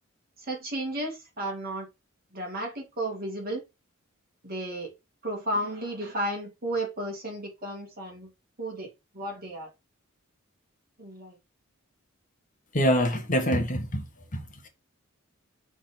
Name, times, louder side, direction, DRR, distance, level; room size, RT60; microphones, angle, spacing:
voice 1, 0.4-1.9 2.3-3.6 4.4-4.9 5.2-8.3 8.6-9.7 11.0-11.4, right 1 dB, 45° right, 2.5 m, -33 dB
voice 2, 12.7-14.0 14.3-14.7, equal, 40° left, 1.4 m, -25 dB
6.0 x 3.7 x 5.3 m
head